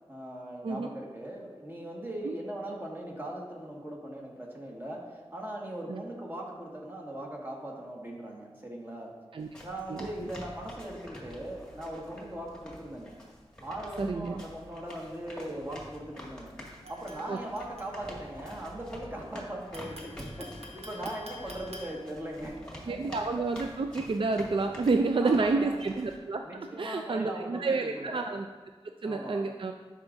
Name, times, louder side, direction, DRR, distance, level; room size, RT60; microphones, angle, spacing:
voice 1, 0.1-5.0 5.3-9.1 9.6-13.2 13.6-16.5 16.9-23.2 24.6-24.7 25.2-25.8 26.1-28.3 29.0-29.4, right 1 dB, 20° right, -2 dB, 1.7 m, -39 dB
sound 1, 9.4-26.2, left 1 dB, 5° left, 2.1 m, -47 dB
voice 2, 14.0-14.4 17.3-17.4 22.8-26.4 26.8-28.5 29.0-29.7, right 3 dB, 55° right, 5 dB, 0.4 m, -29 dB
sound 2, 16.8-18.3 19.7-22.7, equal, 75° right, 1.1 m, -49 dB
11.0 x 4.8 x 2.6 m, 1.4 s
cardioid pair, 40°, 11 cm